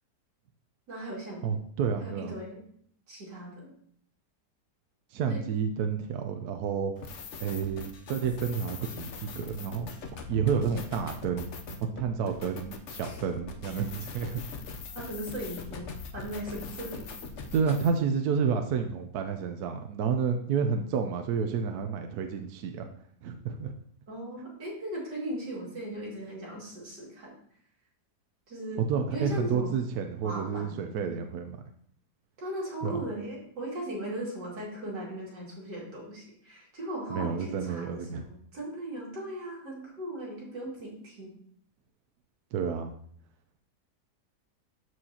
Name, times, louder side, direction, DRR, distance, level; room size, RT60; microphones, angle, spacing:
voice 1, 0.9-1.5 2.0-2.6 3.1-3.7 5.3-5.4 14.9-17.0 24.1-27.3 28.5-28.8 29.1-29.8 30.2-31.1 32.4-41.3, right 1 dB, 85° right, -4 dB, 3.0 m, -38 dB
voice 2, 1.4-2.3 5.1-6.9 7.4-11.5 11.8-14.4 17.5-22.9 23.2-23.7 28.9-31.6 32.8-33.0 37.1-38.2 42.5-42.9, right 6 dB, 70° right, 5 dB, 1.1 m, -30 dB
sound 1, 7.0-17.9, left 4 dB, 55° left, 0.9 m, -42 dB
12.5 x 4.6 x 2.9 m, 0.62 s
omnidirectional pair, 1.8 m